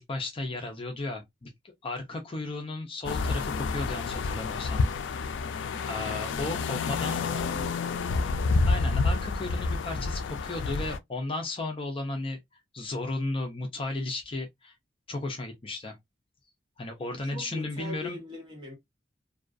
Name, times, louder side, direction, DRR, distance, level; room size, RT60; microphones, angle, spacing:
voice 1, 0.0-1.5 1.8-4.9 5.9-7.4 8.7-12.4 12.7-14.7 15.1-16.0 16.8-18.2, left 2 dB, 30° left, 0.5 m, -34 dB
sound 1, 3.0-11.0, left 4 dB, 85° left, 0.3 m, -29 dB
voice 2, 7.0-8.3 17.3-18.8, left 2 dB, 25° right, 1.3 m, -41 dB
2.4 x 2.3 x 2.4 m
head